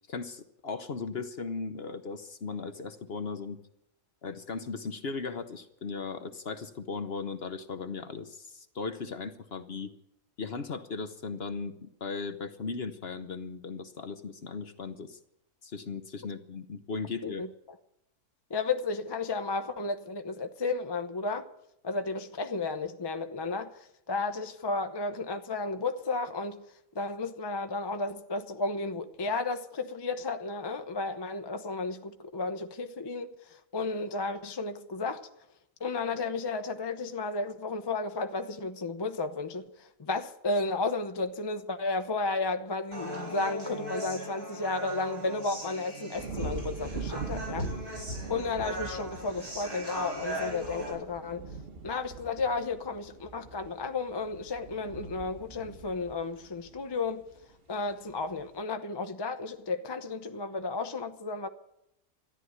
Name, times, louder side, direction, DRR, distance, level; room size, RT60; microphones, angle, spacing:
voice 1, 0.1-3.6 4.2-9.9 10.4-15.2 15.6-17.4, left 4 dB, 50° left, 1.0 m, -37 dB
voice 2, 18.5-21.5 21.8-23.7 24.1-26.6 26.9-33.3 33.7-35.3 35.8-47.7 48.3-51.4 51.8-57.2 57.7-61.5, left 3 dB, 25° left, 0.6 m, -33 dB
Human voice, 42.9-50.9, equal, 90° right, 7.7 m, -39 dB
sound 1, 46.1-57.4 57.9-58.3, right 3 dB, 40° right, 1.5 m, -41 dB
13.5 x 11.0 x 9.4 m
omnidirectional pair, 1.6 m